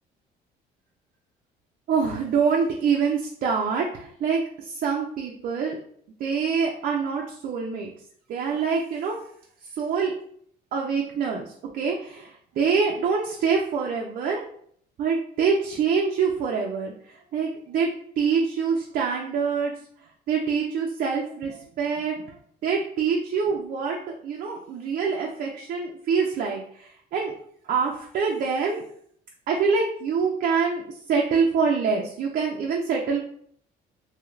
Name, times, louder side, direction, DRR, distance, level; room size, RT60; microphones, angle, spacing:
voice 1, 1.9-4.4 4.8-5.8 6.2-7.9 8.3-9.2 9.8-10.1 10.7-11.5 11.7-12.3 12.6-14.4 15.0-16.9 17.3-17.9 18.2-19.7 20.3-22.2 22.6-26.6 27.1-27.3 27.7-28.8 29.5-30.8 31.1-33.2, right 5 dB, 55° right, 0 dB, 0.5 m, -25 dB
2.7 x 2.4 x 3.1 m, 0.62 s
cardioid pair, 110°, 17 cm